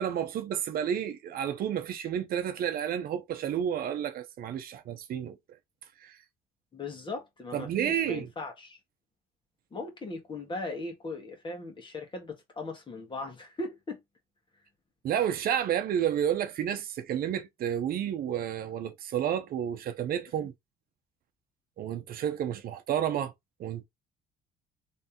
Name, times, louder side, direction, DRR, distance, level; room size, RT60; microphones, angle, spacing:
voice 1, 0.0-5.4 6.0-6.2 7.5-8.3 15.0-20.5 21.8-23.3 23.6-23.8, right 9 dB, 60° right, 0.7 m, -31 dB
voice 2, 6.7-8.8 9.7-14.0 20.3-20.5, left 2 dB, 30° left, 1.7 m, -38 dB
3.3 x 3.3 x 2.9 m
cardioid pair, 110°, 17 cm